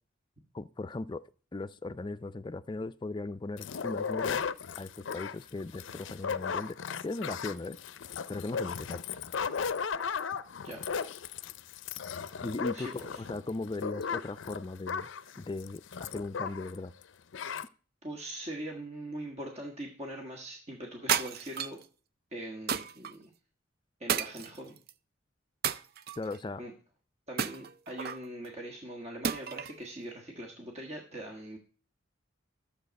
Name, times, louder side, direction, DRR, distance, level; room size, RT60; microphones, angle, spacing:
voice 1, 0.5-1.2 1.5-4.4 4.8-6.8 7.0-7.8 8.3-9.0 12.4-15.1 15.4-16.9 26.2-26.6, left 2 dB, 25° left, 0.4 m, -38 dB
sound 1, 3.6-16.8 17.0-17.1 17.3-17.7, left 6 dB, 75° left, 0.5 m, -36 dB
voice 2, 12.7-13.2 18.0-21.8 22.3-23.3 24.0-24.8 26.6-26.7 27.3-31.6, right 1 dB, 35° right, 1.5 m, -42 dB
sound 2, 21.1-21.8 22.7-23.1 24.1-24.9 25.6-26.4 27.4-28.3 29.2-29.8, right 8 dB, 50° right, 0.5 m, -32 dB
12.5 x 7.2 x 5.2 m
head